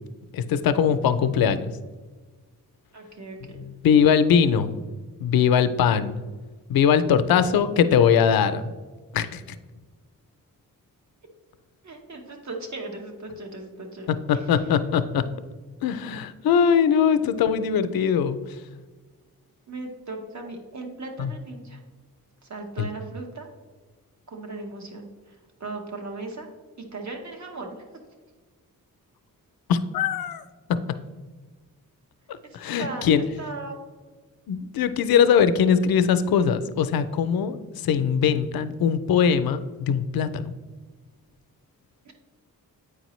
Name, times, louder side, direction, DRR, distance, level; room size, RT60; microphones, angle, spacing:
voice 1, 0.3-1.7 3.6-4.8 5.2-6.2 6.7-8.7 9.1-9.4 14.1-15.2 15.8-18.4 21.2-21.3 22.8-22.9 29.7-30.4 32.5-33.2 34.5-37.6 37.8-40.5, left 7 dB, 85° left, 12 dB, 0.5 m, -21 dB
voice 2, 2.9-3.6 11.8-14.1 14.3-14.4 17.2-17.6 19.7-21.8 22.4-23.5 24.3-25.3 25.6-26.5 26.8-27.8 32.5-33.8 42.0-42.1, right 3 dB, 50° right, 2 dB, 1.0 m, -37 dB
8.3 x 4.9 x 3.0 m, 1.4 s
wide cardioid pair, 145°, 35 cm